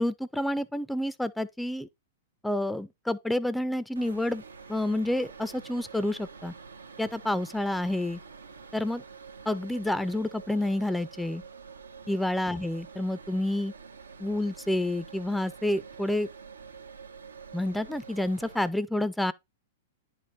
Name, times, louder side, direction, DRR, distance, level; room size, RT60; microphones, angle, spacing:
voice 1, 0.0-1.9 2.4-4.4 4.7-6.5 7.0-8.2 8.7-9.0 9.5-11.4 12.1-13.7 14.2-16.3 17.5-19.3, left 1 dB, 5° left, 0.4 m, -29 dB
sound 1, 4.0-18.7, right 5 dB, 90° right, 0.5 m, -47 dB
10.0 x 4.0 x 3.2 m
hypercardioid pair, 110°, 0 cm